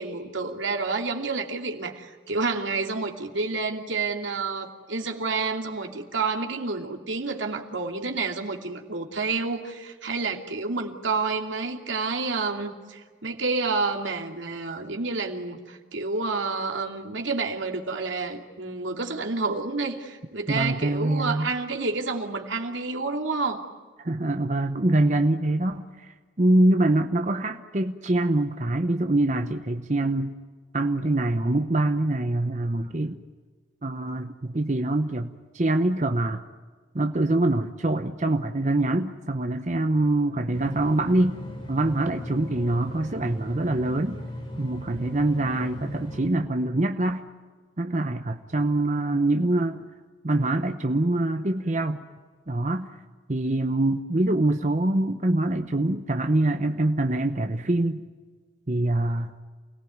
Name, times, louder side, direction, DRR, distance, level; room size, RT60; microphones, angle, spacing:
voice 1, 0.0-23.6, right 3 dB, 80° right, 3 dB, 2.7 m, -29 dB
voice 2, 20.5-21.5 24.0-30.3 30.7-33.2 33.8-36.4 36.9-41.4 41.7-44.2 44.6-47.2 47.8-49.8 50.2-52.0 52.5-52.9 53.3-58.0 58.7-59.3, right 2 dB, 40° right, 7 dB, 0.9 m, -24 dB
sound 1, 40.5-46.3, equal, 30° left, 4.2 m, -38 dB
29.0 x 18.5 x 9.5 m, 1.5 s
head